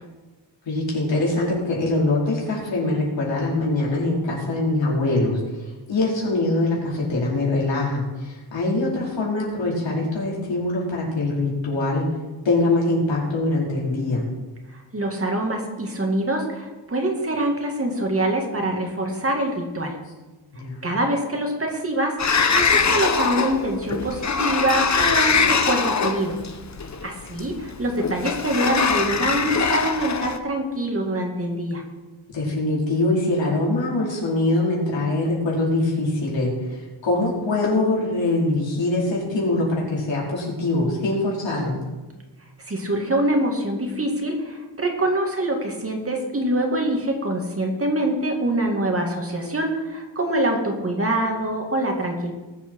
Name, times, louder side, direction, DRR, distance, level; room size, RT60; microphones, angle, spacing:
voice 1, 0.7-5.4 5.9-12.1 12.4-14.3 20.5-20.9 32.3-41.8, left 2 dB, 85° left, -4 dB, 4.7 m, -23 dB
voice 2, 14.7-20.0 20.8-26.4 27.0-31.8 42.7-52.3, right 1 dB, 30° right, 1 dB, 2.2 m, -24 dB
Sliding door, 22.2-30.4, left 5 dB, 40° left, 0.9 m, -22 dB
20.0 x 7.8 x 4.8 m, 1.2 s
wide cardioid pair, 135°, 44 cm